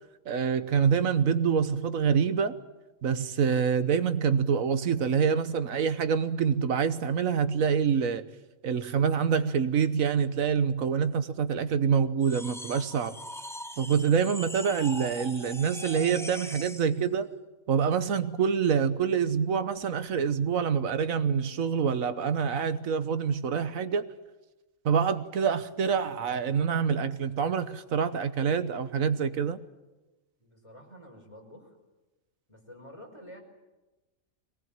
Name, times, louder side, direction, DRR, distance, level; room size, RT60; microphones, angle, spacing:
voice 1, 0.2-2.6 3.0-8.2 8.6-13.2 13.8-17.3 17.7-24.1 24.8-29.6, right 6 dB, 85° right, 1.4 m, -26 dB
sound 1, 12.2-16.9, equal, 5° left, 0.5 m, -41 dB
voice 2, 30.4-31.7 32.5-33.4, equal, 20° left, 5.4 m, -49 dB
23.0 x 19.0 x 8.9 m
omnidirectional pair, 1.4 m